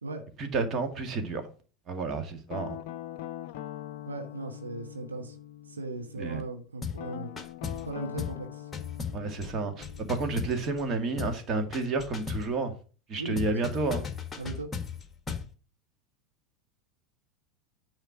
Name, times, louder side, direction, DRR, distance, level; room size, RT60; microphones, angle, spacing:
voice 1, 0.4-1.4 1.9-2.8 6.2-6.4 9.1-12.7 13.1-14.1, right 3 dB, 35° right, 2.0 m, -30 dB
Guitar, 2.5-6.3 6.9-11.7, left 13 dB, 55° left, 0.5 m, -43 dB
voice 2, 4.1-5.4 5.7-7.3 7.8-8.7 13.2-13.7 14.4-14.7, right 2 dB, 80° right, 1.2 m, -38 dB
sound 1, 6.8-7.1 7.4-7.9 8.2-8.4 8.7-10.9 11.2-11.4 11.7-12.5 13.4-15.5, left 6 dB, 15° left, 1.5 m, -36 dB
9.9 x 4.4 x 5.8 m
figure-of-eight pair, 80°, 0 cm